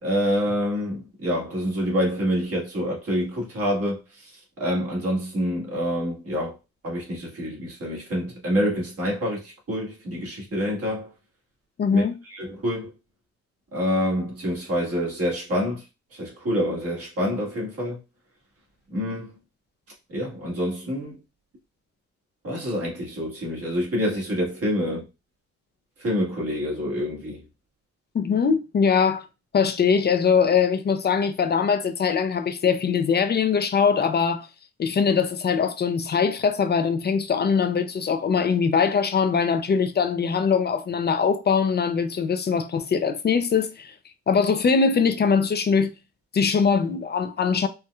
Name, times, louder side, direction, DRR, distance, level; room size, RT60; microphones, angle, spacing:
voice 1, 0.0-4.3 4.6-6.5 6.8-11.1 11.9-12.9 13.7-15.8 16.1-18.0 18.9-19.3 20.1-21.2 22.4-25.0 26.0-27.4, equal, 50° right, 1.6 m, -27 dB
voice 2, 11.8-12.2 28.1-29.3 29.5-34.5 34.8-43.9 44.3-45.9 46.3-47.7, left 6 dB, 35° left, 0.5 m, -22 dB
4.3 x 2.2 x 2.3 m
cardioid pair, 90°, 30 cm